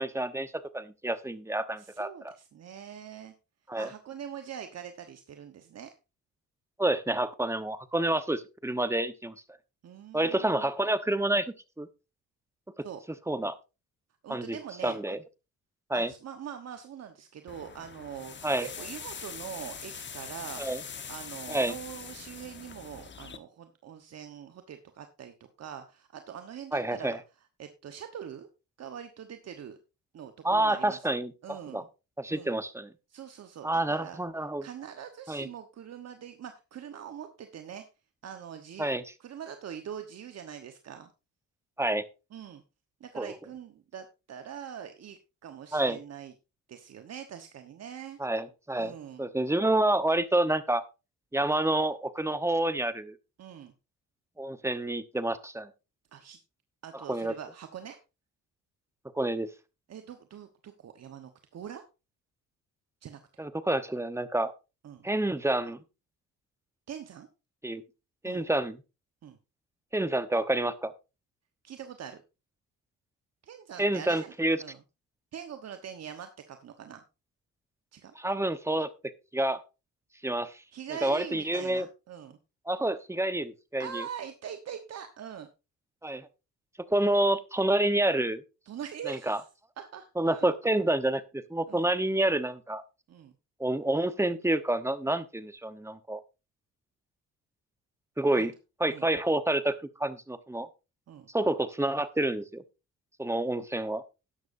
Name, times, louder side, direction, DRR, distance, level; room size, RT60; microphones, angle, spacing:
voice 1, 0.0-2.3 3.7-3.9 6.8-9.3 10.1-11.9 12.8-12.9 13.3-13.6 14.3-14.6 14.8-15.2 15.9-16.1 18.4-18.7 20.6-20.8 21.5-21.7 26.7-27.2 30.4-31.8 32.2-32.9 33.6-34.7 35.3-35.5 38.8-39.0 41.8-42.0 43.1-43.3 45.7-46.0 48.2-48.9 49.2-50.8 51.3-53.2 54.4-55.7 56.9-57.3 59.1-59.5 63.4-64.5 65.0-65.8 67.6-67.8 68.2-68.8 69.9-70.9 73.8-74.6 78.1-78.9 79.3-79.6 80.2-80.6 81.0-81.9 82.7-84.0 86.0-86.3 86.9-88.4 89.1-89.4 90.2-92.8 93.6-96.2 98.2-98.5 98.8-100.7 101.3-102.6 103.2-104.0, right 1 dB, 10° right, 12 dB, 1.0 m, -28 dB
voice 2, 1.8-3.3 3.7-5.9 9.8-10.6 12.8-13.0 14.2-15.0 15.9-20.6 21.1-27.2 27.6-28.5 28.8-29.8 30.1-31.1 31.4-31.9 32.3-32.5 33.1-34.2 34.6-37.9 38.2-38.9 39.2-41.1 42.3-42.6 43.0-46.3 46.7-48.2 48.8-49.3 53.4-53.7 56.1-56.4 56.8-58.0 59.9-61.8 63.0-63.2 64.8-65.1 66.9-67.3 68.2-68.4 69.2-69.4 71.6-72.2 73.4-74.3 74.6-74.8 75.3-77.0 77.9-78.1 80.7-82.4 83.8-85.5 88.7-89.4 89.8-90.5 91.7-91.9 93.1-93.3 98.4-98.5 98.9-99.1 101.1-101.3, right 8 dB, 55° right, 7 dB, 1.2 m, -43 dB
sound 1, 17.5-23.4, left 6 dB, 40° left, 1.2 m, -43 dB
12.5 x 10.5 x 2.7 m, 0.28 s
cardioid pair, 90°, 30 cm